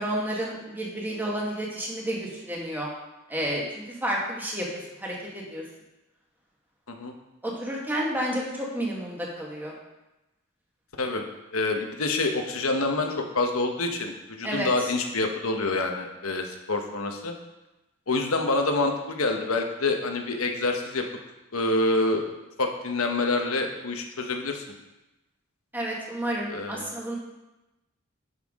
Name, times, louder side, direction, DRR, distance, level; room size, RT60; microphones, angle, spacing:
voice 1, 0.0-2.9 3.3-5.6 7.4-9.7 14.4-14.9 25.7-27.2, right 1 dB, 10° right, -3 dB, 1.5 m, -31 dB
voice 2, 11.5-17.3 18.1-21.0 21.5-22.3 22.6-24.6 26.5-26.9, left 2 dB, 80° left, 3 dB, 1.1 m, -27 dB
10.5 x 5.7 x 3.7 m, 1.0 s
head